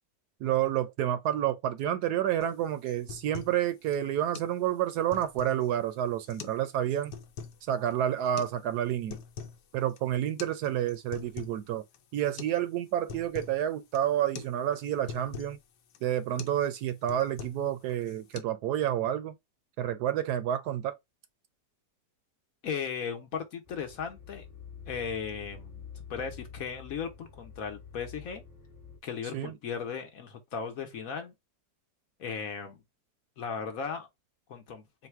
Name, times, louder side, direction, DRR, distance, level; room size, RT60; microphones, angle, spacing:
voice 1, 0.4-7.1 7.7-9.2 9.7-11.8 12.1-15.6 16.0-19.3 19.8-21.0 29.3-29.5, right 11 dB, 70° right, 1.1 m, -29 dB
sound 1, 2.4-2.6 2.9-3.6 3.9-4.0 4.3-4.5 4.9-5.7 6.3-6.6 6.9-7.6 8.4-8.5 8.9-9.6 9.9-10.0 10.4-10.6 10.9-11.6 11.9-12.0 12.4-12.6 12.9-13.6 13.9-14.1 14.4-14.5 14.8-15.6 15.9-16.1 16.4-16.6 16.9-17.7 18.0-18.4, left 6 dB, 85° left, 1.3 m, -43 dB
voice 2, 22.6-24.4 24.9-28.4 29.0-31.3 32.2-32.8 33.4-34.1 34.5-34.8, left 6 dB, 60° left, 1.1 m, -36 dB
sound 2, 23.6-29.0, left 6 dB, 35° left, 1.4 m, -47 dB
4.0 x 2.2 x 4.4 m
omnidirectional pair, 1.9 m